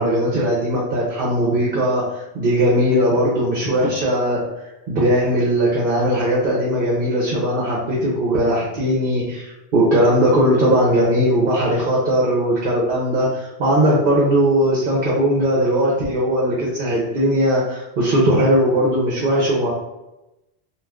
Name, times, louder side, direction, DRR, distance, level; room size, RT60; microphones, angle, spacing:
voice 1, 0.0-19.7, equal, 55° right, -4 dB, 0.8 m, -19 dB
2.4 x 2.4 x 3.3 m, 0.96 s
omnidirectional pair, 1.1 m